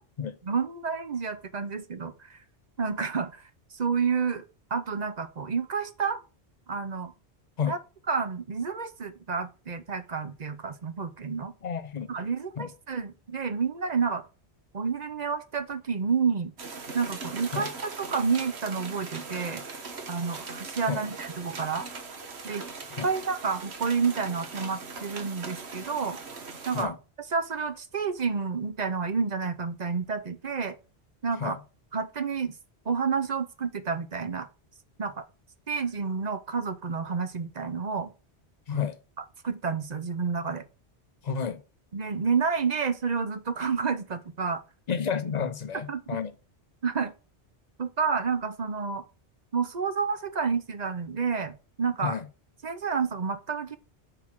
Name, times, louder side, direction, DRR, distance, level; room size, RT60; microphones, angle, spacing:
voice 1, 0.4-2.4 2.8-3.5 3.7-4.4 4.7-6.2 6.7-7.1 7.7-7.8 8.1-11.5 12.1-14.3 14.7-16.5 16.9-19.6 20.1-21.9 22.4-22.6 23.0-26.2 26.7-26.9 27.3-30.8 31.2-31.6 31.9-32.5 32.9-34.5 35.0-35.2 35.7-38.1 39.4-40.7 41.9-44.6 45.9-46.0 46.8-47.1 47.8-49.0 49.5-52.2 52.6-53.8, right 5 dB, 45° right, 0.8 m, -29 dB
voice 2, 11.6-12.1 12.6-12.7 17.5-17.7 20.9-21.0 22.9-23.1 26.7-27.0 31.4-31.6 38.7-39.0 41.2-41.6 44.9-46.3 52.0-52.3, left 7 dB, 45° left, 0.7 m, -30 dB
sound 1, 16.6-26.8, right 4 dB, 70° right, 1.5 m, -40 dB
5.9 x 4.9 x 6.0 m
omnidirectional pair, 1.1 m